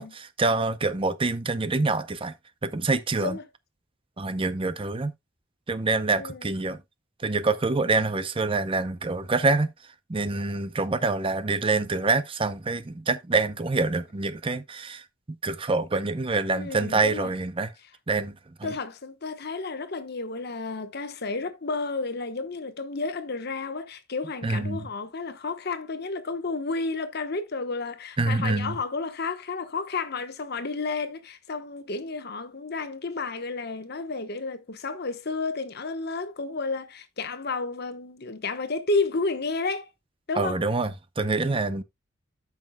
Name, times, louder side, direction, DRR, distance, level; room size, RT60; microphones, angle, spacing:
voice 1, 0.0-2.3 2.6-3.4 4.2-5.1 5.7-6.8 7.2-9.7 10.1-15.0 15.4-17.7 18.1-18.3 18.6-18.7 24.4-24.9 28.2-28.7 40.4-41.8, right 3 dB, 25° right, 0.6 m, -26 dB
voice 2, 6.2-6.5 16.5-17.3 18.6-39.9 40.3-40.6 41.4-41.7, left 3 dB, 50° left, 1.1 m, -31 dB
13.5 x 5.9 x 2.2 m
head